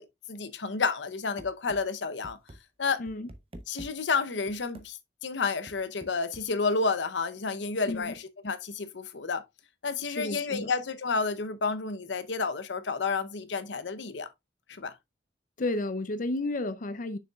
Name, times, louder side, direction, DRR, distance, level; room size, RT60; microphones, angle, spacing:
voice 1, 0.0-2.4 2.8-3.0 3.7-9.4 9.8-14.3 14.7-14.9, left 4 dB, 85° left, 0.8 m, -30 dB
sound 1, 1.4-1.8 2.2-2.6 3.1-3.9 4.5-4.9 5.7-6.5, right 1 dB, 35° right, 0.8 m, -46 dB
voice 2, 10.0-10.7 15.6-17.2, left 2 dB, 50° left, 0.6 m, -32 dB
6.6 x 6.4 x 2.3 m
head